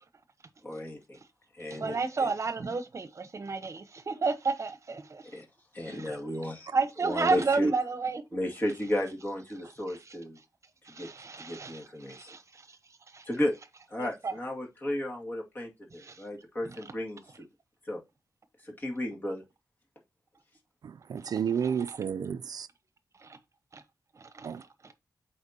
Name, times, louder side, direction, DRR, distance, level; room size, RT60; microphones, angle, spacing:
voice 1, 0.6-1.2 1.5-2.3 5.3-5.5 5.7-6.7 7.0-7.7 8.3-10.4 10.9-11.1 11.4-12.4 13.3-13.5 13.9-17.5 17.9-18.0 18.6-19.4, left 1 dB, 30° left, 2.1 m, -34 dB
voice 2, 1.6-5.4 5.8-6.2 6.7-8.2 9.9-10.1 10.8-13.3 14.0-14.3 16.0-16.2 16.6-16.8 21.2-21.3 21.6-22.0 23.2-23.4 23.7-23.8 24.1-24.9, right 4 dB, 45° right, 0.9 m, -32 dB
voice 3, 20.8-22.7 24.4-24.6, right 7 dB, 75° right, 0.4 m, -31 dB
8.0 x 4.4 x 2.8 m
cardioid pair, 80°, 7 cm